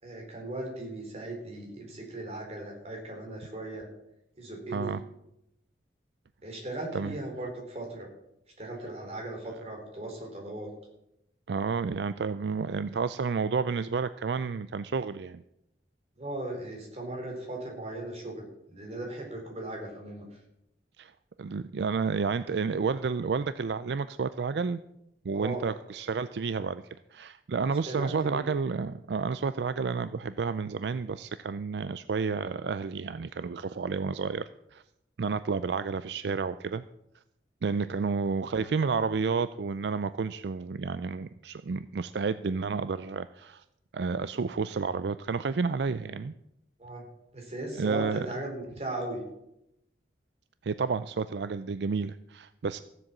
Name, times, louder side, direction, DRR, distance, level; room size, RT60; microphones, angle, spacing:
voice 1, 0.0-3.9 4.4-5.0 6.4-8.1 8.6-10.7 16.2-20.3 25.3-25.6 27.9-28.4 37.8-38.0 46.8-47.1 47.3-49.2, right 1 dB, 35° right, 1 dB, 4.1 m, -37 dB
voice 2, 4.7-5.0 6.9-7.2 11.5-15.4 21.0-21.1 21.4-24.8 25.2-26.8 27.1-34.4 34.7-34.8 35.2-36.8 37.6-43.6 43.9-46.3 47.7-48.3 50.6-52.8, right 5 dB, 70° right, 13 dB, 0.4 m, -30 dB
15.0 x 7.8 x 7.3 m, 0.83 s
head